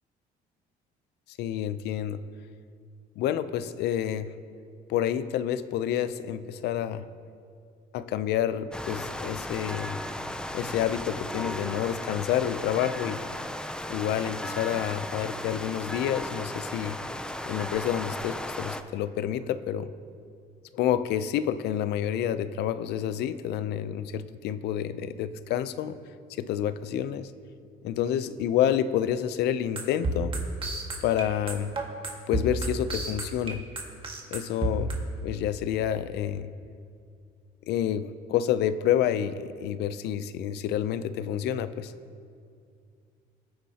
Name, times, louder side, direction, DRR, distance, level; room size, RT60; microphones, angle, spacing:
voice 1, 1.4-2.2 3.2-4.3 4.9-7.1 7.9-10.0 10.5-13.2 13.9-17.0 17.5-19.9 20.7-26.0 26.4-27.3 27.8-30.3 31.0-31.7 32.3-33.6 34.3-35.0 35.2-36.5 37.7-41.9, left 10 dB, 80° left, 13 dB, 0.6 m, -28 dB
sound 1, 8.7-18.8, left 1 dB, 5° left, 0.5 m, -35 dB
sound 2, 29.8-34.9, right 2 dB, 30° right, 1.8 m, -30 dB
20.5 x 9.5 x 2.9 m, 2.3 s
cardioid pair, 110°, 17 cm